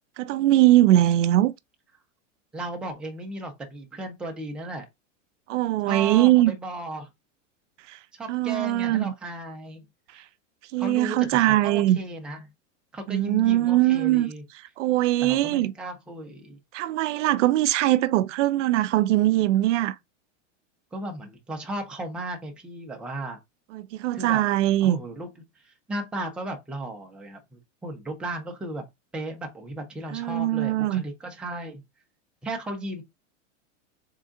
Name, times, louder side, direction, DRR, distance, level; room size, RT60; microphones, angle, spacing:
voice 1, 0.2-1.5 5.5-6.5 7.9-8.0 8.3-9.1 10.7-12.0 13.1-14.3 14.8-15.7 16.7-19.9 23.7-25.0 30.1-31.0, right 15 dB, 70° right, 0.6 m, -21 dB
voice 2, 2.5-4.8 5.9-7.1 8.1-9.8 10.1-10.2 10.8-12.5 12.9-14.4 15.2-16.6 20.9-23.4 24.1-24.4 24.8-25.3 25.6-28.8 29.1-31.8 32.4-33.0, right 1 dB, 5° right, 0.5 m, -35 dB
3.6 x 3.6 x 3.7 m
supercardioid pair, 150°, 38 cm